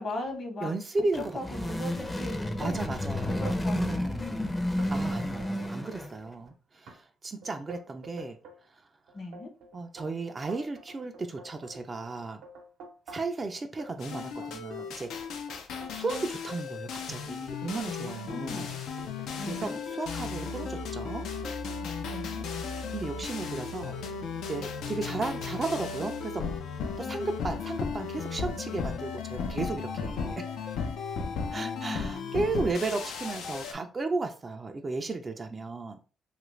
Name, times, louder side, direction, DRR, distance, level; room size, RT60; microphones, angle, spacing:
voice 1, 0.0-0.7 1.3-2.8 3.3-4.7 9.1-9.5 18.3-18.8 19.4-19.8 22.1-22.4 27.0-27.2 31.5-32.3, left 2 dB, 50° left, 1.0 m, -38 dB
voice 2, 0.6-1.9 2.6-4.2 4.9-8.8 9.7-12.4 13.1-15.1 15.9-18.7 19.4-21.3 22.9-24.0 24.5-26.5 27.0-30.4 31.5-36.0, right 3 dB, 30° right, 0.4 m, -34 dB
sound 1, 1.0-6.3, left 1 dB, 15° left, 0.6 m, -31 dB
sound 2, 4.8-5.7 6.0-6.5 6.9-7.0 7.4-8.6 9.1-13.4 13.8-16.3 17.0-17.1 17.6-20.7 21.4-21.8 22.1-22.8, right 2 dB, 80° right, 0.7 m, -48 dB
sound 3, 14.0-33.7, left 5 dB, 85° left, 0.5 m, -35 dB
2.9 x 2.4 x 3.1 m
cardioid pair, 90°, 0 cm